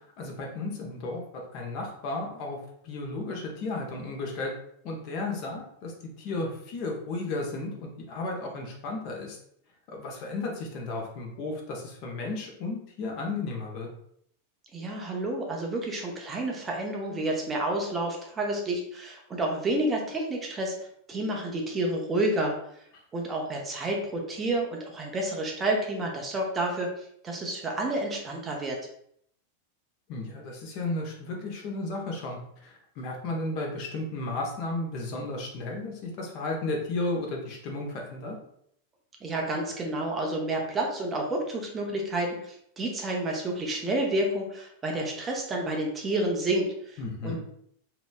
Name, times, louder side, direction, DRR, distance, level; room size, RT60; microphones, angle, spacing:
voice 1, 0.0-2.6 2.8-4.5 4.8-9.4 9.9-13.9 30.1-38.4 47.0-47.4, left 2 dB, 45° left, 0 dB, 0.7 m, -34 dB
voice 2, 14.7-20.7 21.1-22.5 23.1-26.9 27.2-28.8 39.2-47.4, right 1 dB, 20° right, 0 dB, 0.7 m, -30 dB
3.0 x 2.9 x 2.2 m, 0.69 s
figure-of-eight pair, 90°, 0 cm